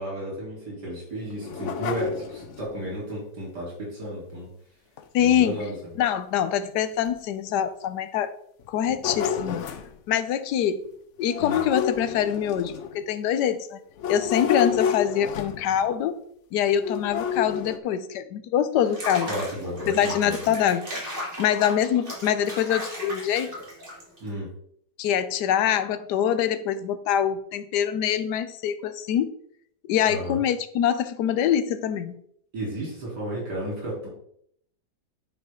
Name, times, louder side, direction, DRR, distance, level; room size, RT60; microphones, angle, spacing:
voice 1, 0.0-4.5 5.2-5.7 11.4-11.6 19.3-20.3 24.2-24.5 30.1-30.4 32.5-34.1, right 1 dB, 70° right, -5 dB, 4.2 m, -33 dB
sound 1, 1.3-2.8 5.0-5.1 5.6-5.7 6.4-6.5 7.1-7.2 8.6-9.9 11.3-13.1 14.0-15.9 16.8-17.8, left 7 dB, 60° left, 0.8 m, -30 dB
voice 2, 5.1-5.6 6.0-8.3 8.7-9.7 10.1-10.8 11.2-13.8 14.1-16.2 16.5-19.3 19.9-20.9 21.4-23.5 25.0-29.3 29.8-32.2, left 9 dB, 75° left, 13 dB, 1.2 m, -24 dB
Water / Bathtub (filling or washing), 18.8-24.3, equal, 30° right, 2.6 m, -36 dB
10.5 x 4.8 x 3.7 m, 0.69 s
omnidirectional pair, 1.8 m